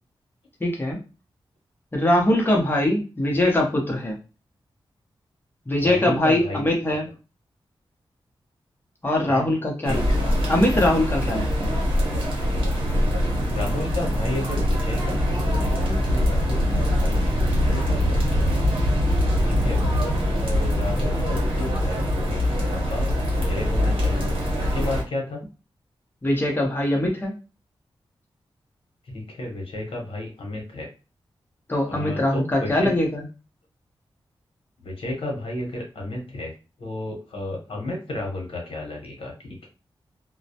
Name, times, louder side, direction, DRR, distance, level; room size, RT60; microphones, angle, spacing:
voice 1, 0.6-1.0 1.9-4.2 5.7-7.1 9.0-11.8 19.4-19.7 26.2-27.3 31.7-33.2, left 1 dB, 20° left, 0 dB, 0.7 m, -22 dB
voice 2, 5.8-6.7 9.3-9.5 9.9-10.2 13.5-18.0 18.3-18.6 19.5-22.4 22.7-24.3 24.6-25.4 29.1-30.9 31.9-32.9 34.8-36.5 36.8-39.7, left 2 dB, 80° left, 0 dB, 0.9 m, -33 dB
sound 1, 9.8-25.0, equal, 75° right, 0.9 m, -23 dB
2.2 x 2.0 x 2.7 m, 0.32 s
wide cardioid pair, 130°, 9 cm